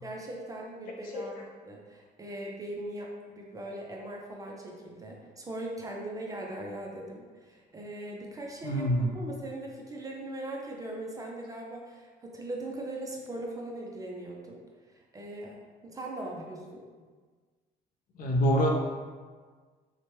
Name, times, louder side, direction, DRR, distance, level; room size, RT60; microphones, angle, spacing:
voice 1, 0.0-1.4 1.6-14.6 14.9-16.9, right 1 dB, 20° right, -1 dB, 0.4 m, -40 dB
voice 2, 8.6-9.1 18.2-18.7, equal, 55° left, 0 dB, 0.5 m, -25 dB
2.8 x 2.1 x 3.0 m, 1.5 s
cardioid pair, 110°, 17 cm